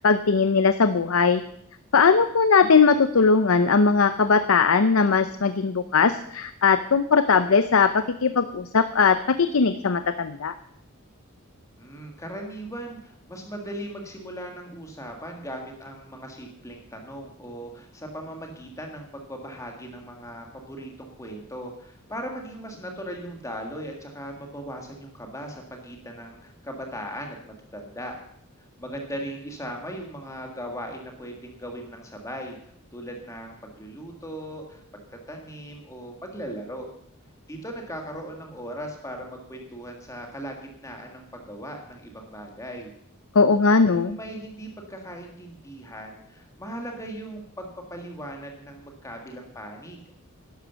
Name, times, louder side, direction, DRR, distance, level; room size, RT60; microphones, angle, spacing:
voice 1, 0.0-1.4 1.9-10.5 43.3-44.2, left 5 dB, 75° left, 11 dB, 0.6 m, -19 dB
voice 2, 11.8-28.2 28.8-35.0 35.3-36.9 37.5-42.9 43.8-50.1, equal, 15° left, 2 dB, 1.7 m, -38 dB
11.5 x 11.5 x 6.9 m, 0.71 s
head